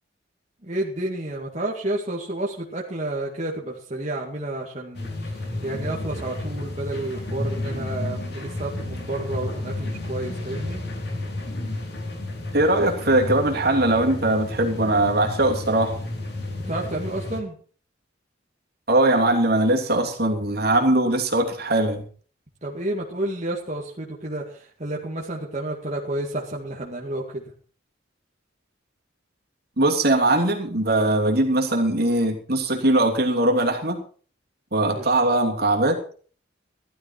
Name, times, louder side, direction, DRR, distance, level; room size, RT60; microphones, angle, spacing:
voice 1, 0.6-10.8 16.7-17.6 22.6-27.4 34.9-35.1, right 1 dB, 35° right, -2 dB, 2.1 m, -30 dB
sound 1, 4.9-17.4, left 2 dB, 60° left, 3.3 m, -32 dB
voice 2, 12.5-16.0 18.9-22.0 29.8-34.0 34.7-36.0, right 1 dB, 55° right, 2 dB, 3.0 m, -21 dB
16.0 x 12.5 x 4.6 m, 0.43 s
head